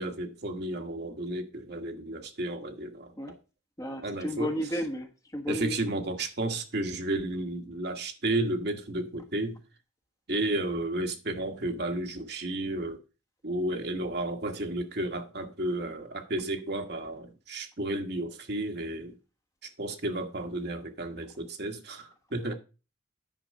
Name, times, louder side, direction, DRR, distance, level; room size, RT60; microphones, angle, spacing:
voice 1, 0.0-3.4 4.0-4.5 5.5-9.6 10.3-13.0 13.4-19.2 19.6-22.5, right 1 dB, 55° right, 1.4 m, -32 dB
voice 2, 3.8-5.8, equal, 15° left, 1.2 m, -33 dB
10.0 x 4.5 x 6.4 m
head